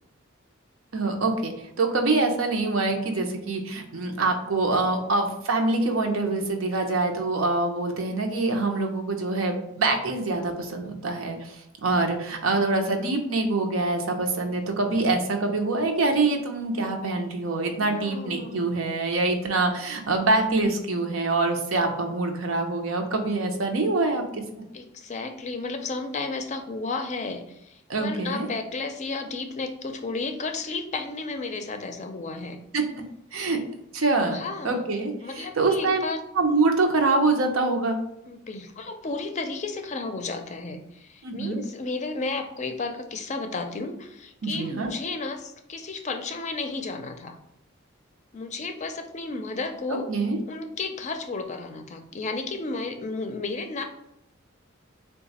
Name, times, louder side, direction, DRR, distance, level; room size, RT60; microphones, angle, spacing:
voice 1, 0.9-24.2 24.6-24.7 27.9-28.5 32.7-32.8 33.3-33.6 33.9-36.1 36.3-38.0 41.2-41.6 44.4-44.9 50.1-50.4, right 3 dB, 90° right, 4 dB, 0.7 m, -25 dB
voice 2, 17.7-18.7 24.7-32.6 34.3-34.9 35.2-36.2 38.3-47.4 48.3-50.1 50.5-53.8, left 3 dB, 35° left, 6 dB, 0.4 m, -33 dB
3.9 x 2.3 x 4.1 m, 0.80 s
head